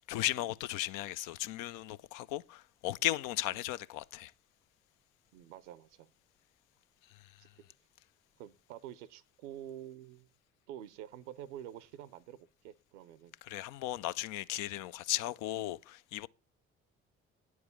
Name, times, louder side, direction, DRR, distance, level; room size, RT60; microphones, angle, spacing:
voice 1, 0.1-4.3 13.5-16.3, left 14 dB, 60° left, 0.5 m, -36 dB
voice 2, 5.3-6.1 7.4-7.6 8.4-10.3 10.7-13.3, right 11 dB, 75° right, 0.7 m, -48 dB
9.4 x 4.8 x 7.1 m
figure-of-eight pair, 50°, 35 cm